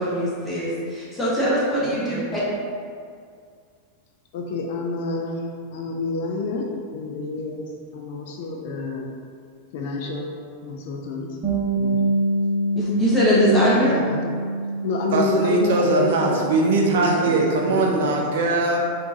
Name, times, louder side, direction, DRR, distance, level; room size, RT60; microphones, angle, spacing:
voice 1, 0.0-2.4 12.7-14.0, equal, 5° left, -9 dB, 1.1 m, -21 dB
voice 2, 1.8-2.4 4.3-5.4 5.7-6.7 6.9-7.6 7.9-9.1 9.7-10.3 10.6-11.3 11.8-12.0 13.7-14.3 14.8-16.4 16.9-17.1 17.7-18.1, left 3 dB, 50° left, 1 dB, 0.4 m, -28 dB
Bass guitar, 11.4-17.7, right 1 dB, 30° right, 1.0 m, -26 dB
voice 3, 15.1-18.8, right 2 dB, 55° right, 0 dB, 0.4 m, -21 dB
4.2 x 2.5 x 2.8 m, 2.2 s
figure-of-eight pair, 90°, 0 cm